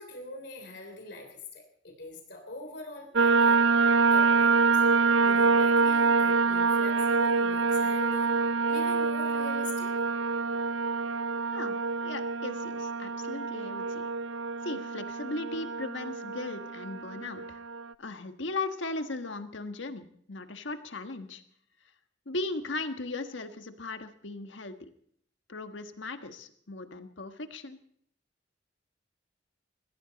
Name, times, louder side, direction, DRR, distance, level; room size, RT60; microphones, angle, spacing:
voice 1, 0.0-3.7 4.1-4.7 5.2-9.9, left 2 dB, 60° left, 3 dB, 3.3 m, -43 dB
sound 1, 3.2-17.9, right 4 dB, 80° right, 0.6 m, -26 dB
voice 2, 12.0-14.1 14.6-17.6 18.0-21.4 22.2-24.9 25.5-27.8, left 3 dB, 80° left, 8 dB, 1.5 m, -37 dB
22.5 x 15.5 x 4.1 m, 0.66 s
head